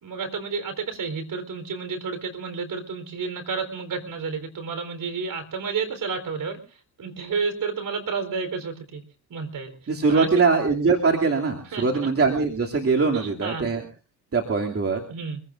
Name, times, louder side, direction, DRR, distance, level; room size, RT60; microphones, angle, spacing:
voice 1, 0.0-9.0 9.3-10.5 11.7-12.1 13.1-13.7 15.1-15.4, right 5 dB, 50° right, 8 dB, 4.0 m, -31 dB
voice 2, 9.9-13.8 14.3-15.0, right 4 dB, 30° right, 1 dB, 2.7 m, -22 dB
25.0 x 16.5 x 2.6 m, 0.35 s
hypercardioid pair, 55°, 43 cm